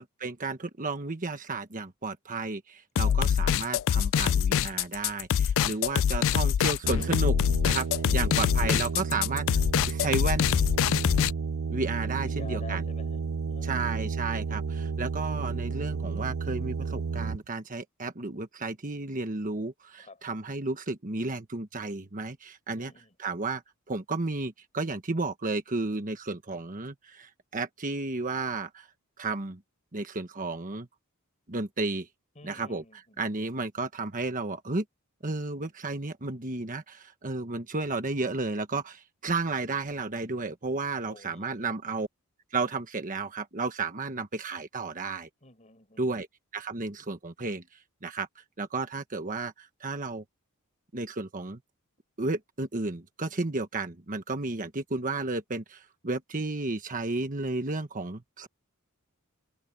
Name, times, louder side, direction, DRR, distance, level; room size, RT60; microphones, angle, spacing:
voice 1, 0.0-7.4 7.6-10.4 11.7-12.8 13.6-22.9 23.2-23.6 23.9-28.9 29.2-29.6 29.9-30.9 31.5-32.1 32.4-32.8 33.2-34.8 35.2-42.1 42.5-45.3 46.0-46.3 46.5-47.6 48.0-50.2 50.9-51.6 52.2-58.5, right 3 dB, 40° right, 1.3 m, -33 dB
sound 1, 3.0-11.3, left 8 dB, 60° left, 0.3 m, -24 dB
sound 2, 6.8-17.4, right 5 dB, 70° right, 0.5 m, -32 dB
voice 2, 12.2-13.2 13.5-13.9 20.0-20.2 22.8-23.1 32.3-33.2 41.0-41.7 45.4-46.0, left 3 dB, 30° left, 6.7 m, -49 dB
head